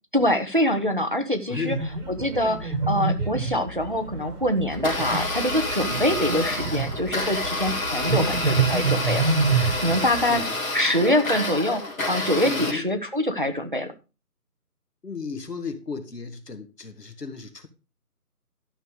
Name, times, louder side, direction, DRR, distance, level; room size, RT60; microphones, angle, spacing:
voice 1, 0.1-1.8 2.1-9.2 9.5-10.4 10.7-13.9, left 1 dB, 35° right, 0.9 m, -24 dB
voice 2, 1.5-1.9 2.4-2.5 10.3-10.5 12.4-12.9 15.0-17.7, left 5 dB, 80° left, 2.3 m, -34 dB
sound 1, 1.7-10.4, right 4 dB, 65° right, 2.3 m, -27 dB
Domestic sounds home sounds, 4.7-12.7, left 2 dB, 60° left, 3.4 m, -29 dB
12.5 x 6.3 x 4.9 m
figure-of-eight pair, 175°, 47 cm